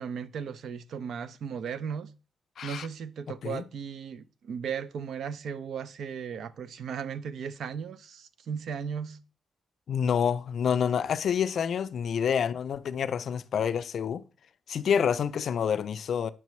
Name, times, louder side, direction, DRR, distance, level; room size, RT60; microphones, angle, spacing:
voice 1, 0.0-2.1 2.6-9.2, right 7 dB, 65° right, 0.4 m, -36 dB
voice 2, 2.6-2.9 3.4-3.6 9.9-14.2 14.7-16.3, left 7 dB, 55° left, 0.3 m, -28 dB
9.1 x 6.0 x 3.1 m
wide cardioid pair, 180°, 0 cm